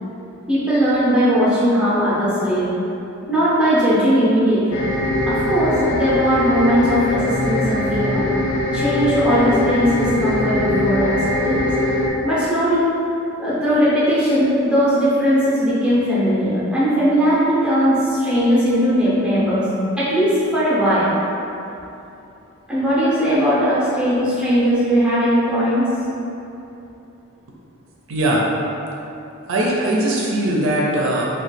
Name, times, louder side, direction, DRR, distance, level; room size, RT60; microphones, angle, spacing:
voice 1, 0.5-2.7 3.3-4.8 5.3-8.2 8.7-11.7 12.2-12.9 13.4-19.7 20.0-21.2 22.7-25.9, equal, 5° right, -10 dB, 0.6 m, -18 dB
sound 1, 4.7-12.1, left 1 dB, 75° left, 0.4 m, -21 dB
voice 2, 19.5-19.8 28.1-28.4 29.5-31.3, right 1 dB, 70° right, -3 dB, 0.4 m, -20 dB
3.0 x 2.2 x 4.0 m, 2.9 s
head